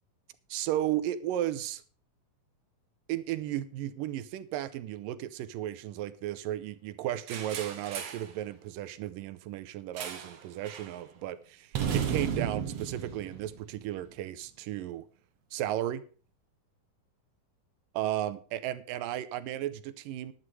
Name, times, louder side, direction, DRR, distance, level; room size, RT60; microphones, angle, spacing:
voice 1, 0.5-1.8 3.1-15.1 15.5-16.0 17.9-20.3, right 12 dB, 80° right, 13 dB, 2.3 m, -34 dB
sound 1, 7.3-8.3 10.0-10.4 10.6-10.9 11.7-14.1, right 7 dB, 55° right, 2.1 m, -34 dB
11.0 x 9.8 x 4.8 m, 0.40 s
omnidirectional pair, 4.1 m